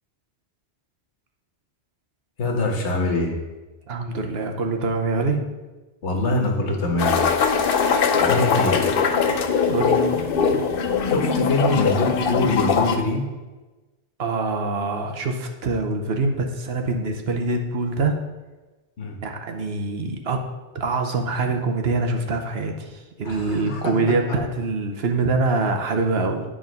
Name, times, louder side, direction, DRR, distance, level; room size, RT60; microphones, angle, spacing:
voice 1, 2.4-3.4 6.0-7.2 8.2-8.9 11.1-13.2 19.0-19.2 23.2-23.9, left 2 dB, 75° left, 1 dB, 1.5 m, -24 dB
voice 2, 3.9-5.4 9.7-10.0 14.2-18.1 19.2-20.4 20.7-26.4, right 3 dB, 65° right, 4 dB, 1.0 m, -24 dB
sound 1, 7.0-13.0, left 6 dB, 60° left, 0.7 m, -21 dB
9.6 x 3.7 x 5.2 m, 1.2 s
omnidirectional pair, 1.2 m